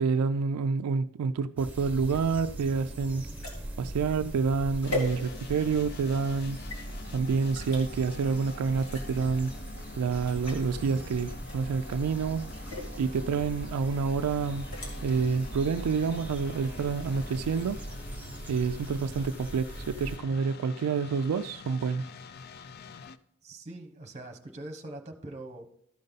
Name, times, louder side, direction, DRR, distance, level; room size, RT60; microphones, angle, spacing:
voice 1, 0.0-3.3 3.8-6.6 7.1-9.5 10.0-12.5 13.0-14.7 15.0-17.8 18.5-22.1, right 5 dB, 85° right, 0.3 m, -28 dB
sound 1, 1.6-20.2, right 1 dB, 10° right, 1.2 m, -41 dB
sound 2, 2.0-5.7 6.2-6.8 7.5-7.8 8.7-9.3 9.7-9.8 10.1-10.7 11.4-11.9 12.4-12.9 14.5-14.9, left 2 dB, 65° left, 2.3 m, -39 dB
sound 3, 4.8-23.2, left 4 dB, 45° left, 0.3 m, -47 dB
voice 2, 23.4-25.7, right 2 dB, 30° right, 1.0 m, -43 dB
13.5 x 5.3 x 3.9 m
head